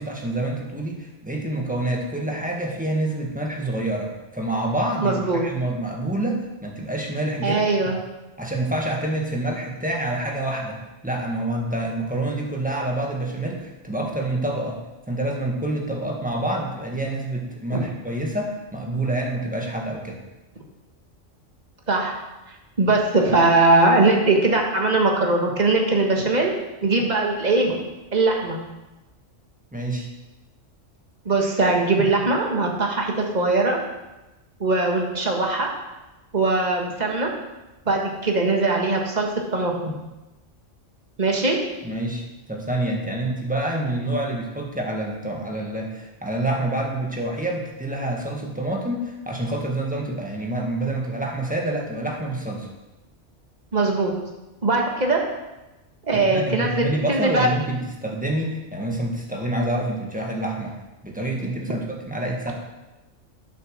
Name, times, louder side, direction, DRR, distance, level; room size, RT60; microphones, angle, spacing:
voice 1, 0.0-7.7 8.4-14.8 15.1-20.2 29.7-30.1 41.8-42.2 42.5-52.7 56.1-60.7 61.0-62.5, right 1 dB, 5° right, -1 dB, 1.6 m, -27 dB
voice 2, 5.0-5.4 7.4-8.0 17.7-17.8 21.9-22.1 22.5-26.5 26.8-27.8 28.1-28.6 31.2-33.8 34.6-35.7 36.3-37.3 37.8-39.9 41.2-41.6 53.7-54.1 54.6-55.2 56.0-57.5, right 3 dB, 35° right, 1 dB, 1.6 m, -21 dB
8.8 x 6.8 x 6.5 m, 1.1 s
omnidirectional pair, 1.3 m